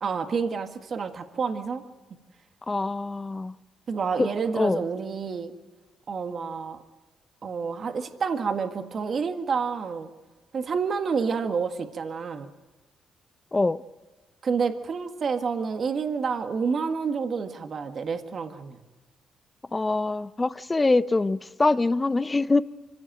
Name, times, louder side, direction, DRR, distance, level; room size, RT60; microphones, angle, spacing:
voice 1, 0.0-1.8 3.9-5.5 6.1-6.8 7.4-10.1 10.5-12.5 14.4-18.8, right 5 dB, 50° right, 1.7 m, -29 dB
voice 2, 2.7-3.5 4.2-4.3 4.5-4.8 13.5-13.8 19.7-22.6, left 3 dB, 20° left, 0.8 m, -24 dB
24.5 x 16.0 x 9.1 m
cardioid pair, 90°, 0 cm